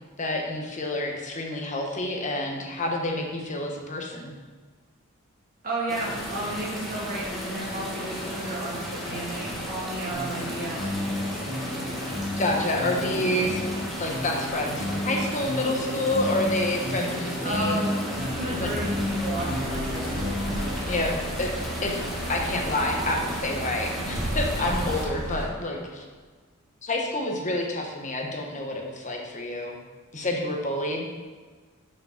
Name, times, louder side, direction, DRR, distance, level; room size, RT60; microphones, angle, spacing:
voice 1, 0.2-4.3 12.4-13.6 14.0-17.8 18.5-18.7 20.9-22.0 22.3-26.0 26.8-29.8 30.1-31.1, left 1 dB, 35° left, 1 dB, 1.1 m, -28 dB
voice 2, 5.6-11.0 17.4-20.4, right 1 dB, 40° right, -4 dB, 1.9 m, -33 dB
sound 1, 5.9-25.0, equal, ahead, 1.5 m, -35 dB
sound 2, 10.1-20.7, left 1 dB, 25° right, 1.5 m, -32 dB
sound 3, 18.1-25.5, right 1 dB, 80° right, 2.3 m, -33 dB
6.2 x 5.1 x 5.8 m, 1.5 s
head